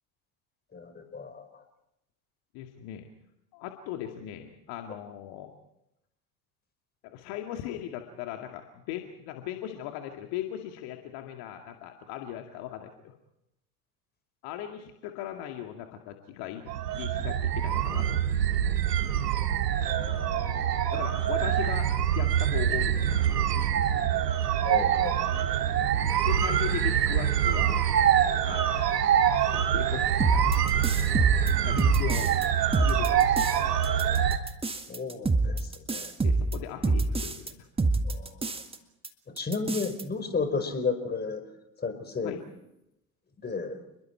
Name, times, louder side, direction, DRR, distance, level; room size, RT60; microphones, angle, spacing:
voice 1, 0.7-1.5 19.8-20.9 24.6-25.6 26.1-26.2 34.7-36.1 38.0-38.6 39.3-41.4 41.8-42.4 43.4-43.8, left 4 dB, 20° left, 7 dB, 4.7 m, -34 dB
voice 2, 2.5-3.1 3.5-5.5 7.0-13.1 14.4-18.4 20.9-23.5 26.2-28.0 28.5-28.9 29.5-30.9 31.6-32.4 32.8-33.9 36.2-37.7 42.2-42.4, left 11 dB, 50° left, 4 dB, 2.3 m, -38 dB
sound 1, 16.7-34.4, right 9 dB, 75° right, 2.0 m, -25 dB
sound 2, 30.2-32.4 32.7-33.6 33.8-37.5 37.8-38.8 39.0-39.1 39.4-40.0, right 3 dB, 10° right, 1.8 m, -26 dB
29.5 x 22.0 x 4.6 m, 0.85 s
hypercardioid pair, 80°, 48 cm